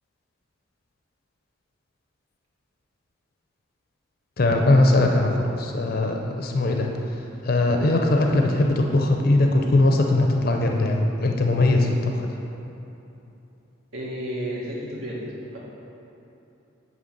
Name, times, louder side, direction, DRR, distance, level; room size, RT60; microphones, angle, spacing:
voice 1, 4.4-6.9 7.4-12.3, left 2 dB, 45° left, 2 dB, 0.5 m, -20 dB
voice 2, 13.9-15.2 15.5-15.6, equal, 80° right, -6 dB, 1.8 m, -31 dB
9.1 x 3.2 x 6.6 m, 2.9 s
head